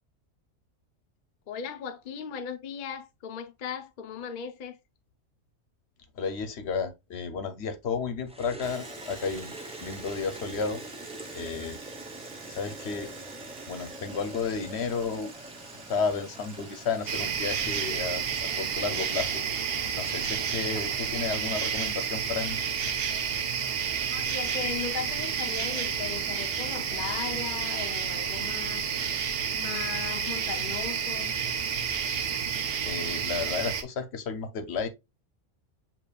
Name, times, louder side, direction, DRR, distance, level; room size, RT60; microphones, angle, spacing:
voice 1, 1.5-4.8 24.1-28.9 29.5-31.4, left 7 dB, 55° left, 0.7 m, -37 dB
voice 2, 6.1-9.5 9.8-10.8 11.3-11.8 12.5-13.1 13.7-15.3 15.9-19.4 19.9-22.6 32.5-34.9, left 5 dB, 75° left, 1.0 m, -32 dB
sound 1, 8.3-20.9, right 1 dB, 10° right, 0.3 m, -44 dB
Domestic sounds home sounds, 8.6-18.0 18.2-19.1, right 5 dB, 85° right, 1.2 m, -48 dB
sound 2, 17.1-33.8, right 7 dB, 65° right, 0.8 m, -30 dB
6.7 x 2.9 x 2.3 m
omnidirectional pair, 1.1 m